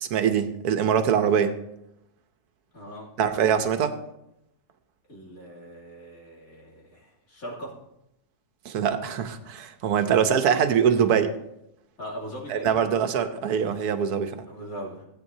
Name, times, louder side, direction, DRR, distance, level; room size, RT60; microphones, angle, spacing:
voice 1, 0.0-1.5 3.2-3.9 8.6-11.3 12.5-14.4, right 7 dB, 80° right, 9 dB, 1.3 m, -23 dB
voice 2, 2.7-3.1 5.1-7.7 12.0-13.0 14.4-15.1, equal, 65° left, -4 dB, 3.3 m, -40 dB
17.0 x 8.8 x 2.7 m, 0.82 s
omnidirectional pair, 1.6 m